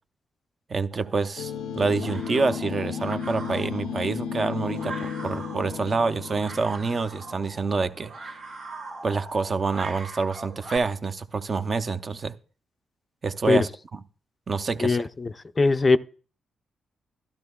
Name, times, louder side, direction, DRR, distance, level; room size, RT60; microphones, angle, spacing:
voice 1, 0.7-8.4 9.0-12.3 13.2-13.7 14.5-15.0, right 4 dB, 45° right, 0.6 m, -27 dB
sound 1, 0.9-10.8, right 3 dB, 80° right, 2.4 m, -42 dB
sound 2, 1.4-8.0, left 7 dB, 90° left, 0.4 m, -34 dB
voice 2, 14.8-16.0, left 3 dB, 35° left, 0.4 m, -21 dB
12.0 x 11.5 x 2.3 m
supercardioid pair, 55°, 0 cm